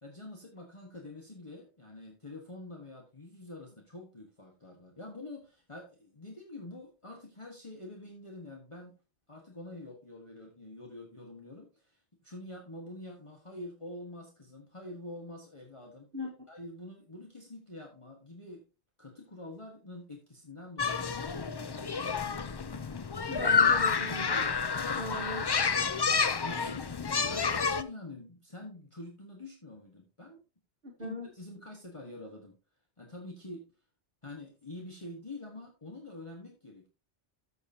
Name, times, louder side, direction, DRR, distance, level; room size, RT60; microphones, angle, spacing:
voice 1, 0.0-8.9 9.3-16.1 16.5-18.6 19.0-22.4 24.8-25.1 26.4-26.9 27.2-30.4 31.0-32.6 33.0-33.6 34.2-36.9, left 2 dB, 30° left, 0 dB, 1.5 m, -46 dB
sound 1, 20.8-27.8, left 5 dB, 45° left, 0.3 m, -29 dB
voice 2, 23.3-24.6 24.9-25.5 30.8-31.3, left 2 dB, 55° right, 1 dB, 1.6 m, -38 dB
14.0 x 6.8 x 2.7 m, 0.30 s
omnidirectional pair, 1.2 m